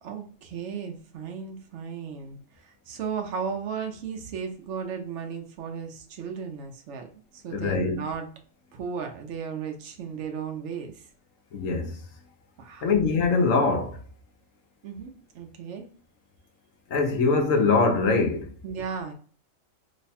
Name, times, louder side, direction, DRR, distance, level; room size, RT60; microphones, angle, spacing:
voice 1, 0.0-7.1 7.3-8.3 8.7-11.1 12.6-12.9 14.8-15.9 18.6-19.1, right 6 dB, 70° right, 0.9 m, -35 dB
voice 2, 7.5-8.0 11.5-12.0 12.8-14.0 16.9-18.5, left 4 dB, 90° left, 1.1 m, -23 dB
3.1 x 2.2 x 4.1 m
omnidirectional pair, 1.3 m